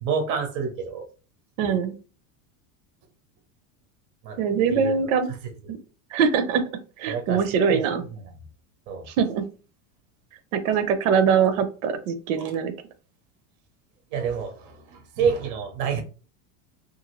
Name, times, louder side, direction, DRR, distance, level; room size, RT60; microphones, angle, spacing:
voice 1, 0.0-1.1 4.2-4.4 4.7-4.9 5.3-5.4 5.6-5.7 7.1-8.2 8.9-9.0 12.4-12.5 14.1-16.0, right 6 dB, 30° right, 4 dB, 0.5 m, -28 dB
voice 2, 1.6-1.9 4.4-5.3 5.7-5.8 6.1-6.6 7.0-8.0 9.1-9.4 10.5-12.7, right 6 dB, 70° right, 9 dB, 0.6 m, -22 dB
2.6 x 2.4 x 2.9 m, 0.36 s
supercardioid pair, 170°, 41 cm